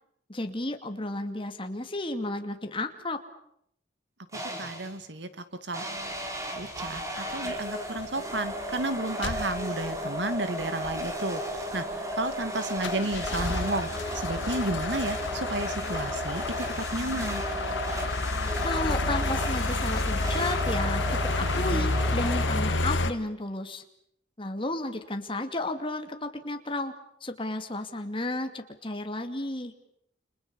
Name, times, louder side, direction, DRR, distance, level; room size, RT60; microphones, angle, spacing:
voice 1, 0.3-3.2 18.6-23.8 24.4-26.9 27.2-29.7, left 2 dB, 30° left, 6 dB, 2.5 m, -33 dB
sound 1, 4.3-5.0 5.7-23.1, equal, 15° right, 4.4 m, -34 dB
voice 2, 4.6-5.3 5.6-5.9 6.5-13.9 14.1-17.4 21.6-21.9, right 2 dB, 70° right, 11 dB, 2.4 m, -32 dB
sound 2, 6.8-7.0 7.5-7.7 8.0-8.1 8.3-8.8 9.2-10.0 10.3-10.4 10.6-11.1 11.6-12.5 12.8-23.1, left 2 dB, 80° left, 1.8 m, -30 dB
30.0 x 27.0 x 7.1 m, 0.73 s
head